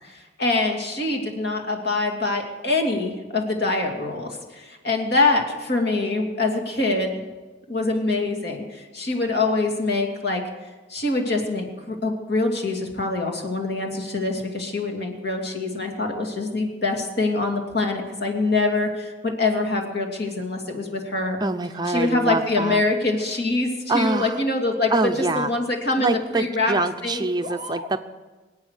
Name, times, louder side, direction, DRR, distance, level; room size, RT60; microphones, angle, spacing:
voice 1, 0.0-7.2 7.7-10.4 10.9-21.4 21.9-24.9 25.3-26.7 27.0-27.9, left 3 dB, 60° left, 3 dB, 2.6 m, -24 dB
voice 2, 21.4-22.8 23.9-24.4 24.9-25.5 26.0-28.0, right 2 dB, 20° right, 8 dB, 0.5 m, -25 dB
24.0 x 8.7 x 6.6 m, 1.3 s
head